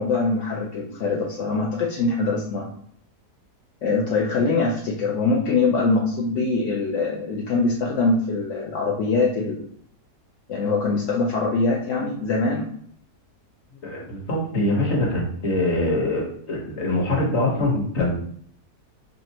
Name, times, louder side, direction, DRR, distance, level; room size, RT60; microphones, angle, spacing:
voice 1, 0.0-2.7 3.8-9.6 10.5-12.7, left 3 dB, 65° left, -3 dB, 0.8 m, -23 dB
voice 2, 13.8-18.1, left 1 dB, 45° left, -2 dB, 1.3 m, -23 dB
5.2 x 2.4 x 2.8 m, 0.63 s
omnidirectional pair, 1.7 m